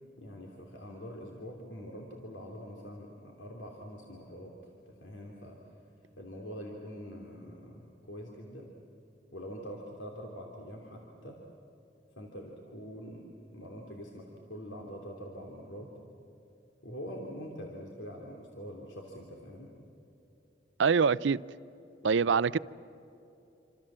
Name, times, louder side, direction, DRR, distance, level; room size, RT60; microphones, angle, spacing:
voice 1, 0.2-4.5 4.9-5.6 6.2-8.7 9.3-11.4 12.1-16.0 16.8-19.7 22.0-22.4, equal, 80° left, 0 dB, 3.2 m, -44 dB
voice 2, 20.8-21.4 22.0-22.6, right 5 dB, 80° right, 19 dB, 0.5 m, -24 dB
28.0 x 26.5 x 7.6 m, 2.9 s
head